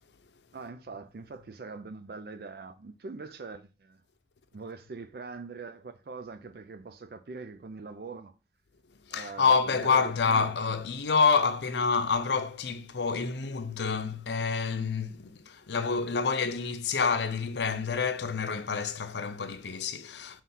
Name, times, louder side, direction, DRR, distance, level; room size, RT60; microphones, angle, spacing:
voice 1, 0.5-4.0 4.5-8.3 9.1-10.5, right 4 dB, 60° right, 0.4 m, -42 dB
voice 2, 9.1-20.4, left 5 dB, 85° left, 0.7 m, -28 dB
5.6 x 3.1 x 5.6 m
head